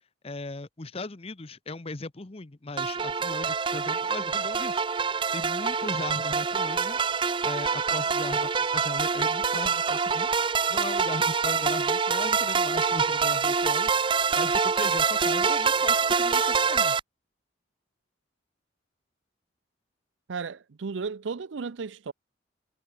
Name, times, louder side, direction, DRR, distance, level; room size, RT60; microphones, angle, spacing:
voice 1, 0.2-4.9 5.3-7.0 7.4-10.3 10.7-17.0, left 2 dB, 30° left, 0.9 m, -38 dB
sound 1, 2.8-17.0, right 5 dB, 25° right, 0.6 m, -25 dB
voice 2, 20.3-22.1, right 5 dB, 85° right, 0.6 m, -34 dB
head